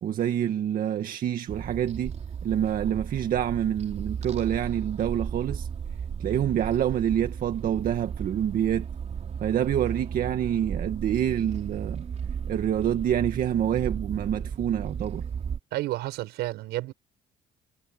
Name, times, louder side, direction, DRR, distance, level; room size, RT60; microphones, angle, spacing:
voice 1, 0.0-2.1 2.4-5.7 6.2-8.9 9.4-12.0 12.5-15.3, right 10 dB, 55° right, 1.8 m, -27 dB
sound 1, 1.5-15.6, right 7 dB, 40° right, 4.8 m, -35 dB
voice 2, 15.7-16.9, right 17 dB, 85° right, 6.2 m, -31 dB
cardioid pair, 110°, 17 cm